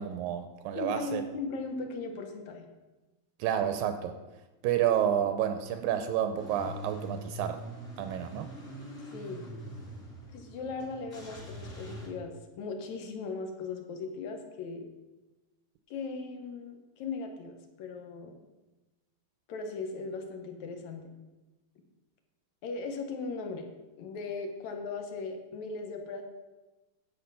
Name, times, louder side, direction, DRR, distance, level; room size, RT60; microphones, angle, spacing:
voice 1, 0.0-1.2 3.4-4.1 4.6-7.6 8.0-8.5, right 10 dB, 80° right, 8 dB, 2.3 m, -30 dB
voice 2, 0.8-2.7 9.1-9.4 10.3-14.9 15.9-18.4 19.5-21.1 22.6-23.7 24.0-26.2, left 4 dB, 65° left, 5 dB, 2.1 m, -38 dB
Car / Engine starting / Idling, 6.4-12.1, right 1 dB, 20° left, 2.0 m, -43 dB
10.5 x 8.0 x 5.6 m, 1.1 s
omnidirectional pair, 4.3 m